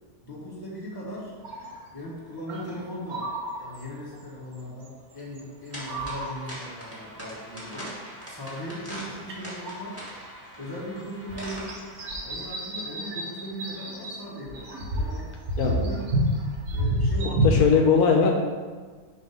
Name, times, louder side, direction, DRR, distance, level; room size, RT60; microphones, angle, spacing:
voice 1, 0.2-1.3 1.9-3.3 3.6-10.0 10.6-11.7 12.2-15.3 15.6-16.1 16.7-17.6, equal, 15° left, -6 dB, 1.2 m, -38 dB
sound 1, 1.4-1.9 2.5-4.3 4.5-5.4 5.7-6.6 7.6-7.7 8.9-9.8 10.8-10.9 11.3-14.2 14.4-17.7, equal, 70° right, 1.3 m, -29 dB
sound 2, 5.7-12.1, right 1 dB, 10° right, 1.7 m, -41 dB
voice 2, 15.6-16.0 17.2-18.3, left 5 dB, 80° left, 2 dB, 1.1 m, -21 dB
6.6 x 3.0 x 5.3 m, 1.5 s
omnidirectional pair, 1.6 m